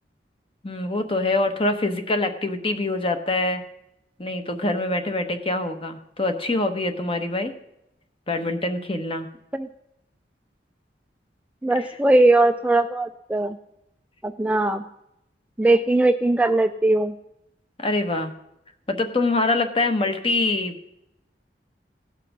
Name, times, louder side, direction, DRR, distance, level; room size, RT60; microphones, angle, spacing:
voice 1, 0.6-3.6 4.2-7.5 8.3-9.3 17.8-18.3 18.9-20.9, left 2 dB, 30° left, 7 dB, 1.0 m, -24 dB
voice 2, 11.6-13.6 14.2-14.8 15.6-17.1, right 2 dB, 10° right, 7 dB, 0.3 m, -20 dB
16.5 x 5.9 x 6.1 m, 0.85 s
head